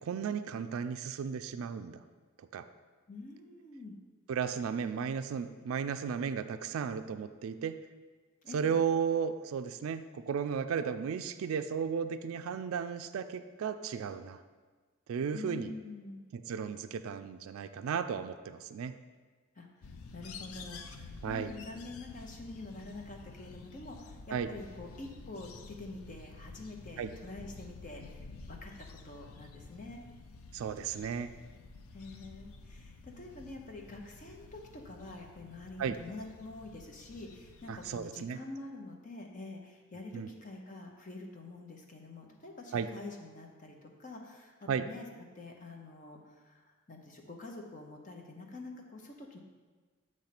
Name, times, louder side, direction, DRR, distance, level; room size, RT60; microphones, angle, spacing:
voice 1, 0.0-2.0 2.4-2.7 4.3-7.8 8.5-14.4 15.1-15.7 16.3-18.9 21.2-21.5 24.3-24.5 27.0-27.1 30.5-31.3 35.8-36.0 37.7-38.4 40.1-40.3 42.7-42.9 44.7-44.9, right 6 dB, 70° right, 9 dB, 0.3 m, -34 dB
voice 2, 3.1-4.0 8.4-8.7 15.3-16.2 19.6-19.7 20.1-30.0 31.9-45.1 45.3-49.4, left 2 dB, 35° left, 2 dB, 0.7 m, -46 dB
sound 1, 19.8-38.0, left 3 dB, 80° left, 0.5 m, -51 dB
8.7 x 3.1 x 5.8 m, 1.4 s
head